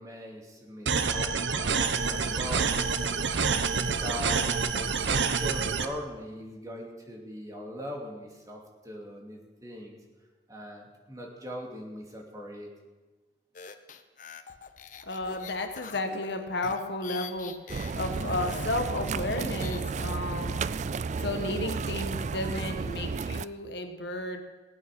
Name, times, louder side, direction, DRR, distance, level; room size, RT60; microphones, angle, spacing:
voice 1, 0.0-2.7 3.4-4.5 4.7-10.0 10.5-12.7, equal, 20° right, -1 dB, 2.5 m, -41 dB
sound 1, 0.9-5.9, right 5 dB, 85° right, 0.9 m, -27 dB
sound 2, 13.5-19.8, left 6 dB, 45° left, 0.9 m, -44 dB
voice 2, 15.1-17.5 18.0-20.6 21.2-24.4, left 2 dB, 65° left, 6 dB, 1.4 m, -33 dB
sound 3, 17.7-23.5, right 4 dB, 40° right, 0.3 m, -32 dB
19.0 x 8.8 x 6.2 m, 1.3 s
head